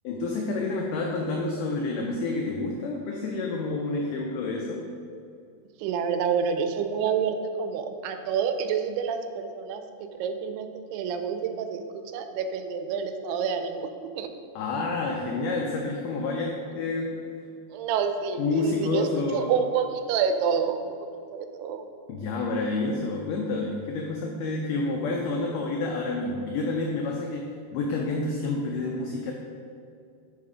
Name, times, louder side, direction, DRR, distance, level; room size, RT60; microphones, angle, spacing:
voice 1, 0.0-4.9 14.6-17.2 18.4-19.6 22.1-29.3, left 3 dB, 90° left, 0 dB, 1.8 m, -29 dB
voice 2, 5.8-9.8 10.1-13.9 14.2-14.3 17.7-19.1 19.3-20.9 21.3-21.8, right 6 dB, 90° right, 7 dB, 2.6 m, -28 dB
5.9 x 5.4 x 4.9 m, 2.3 s
omnidirectional pair, 4.5 m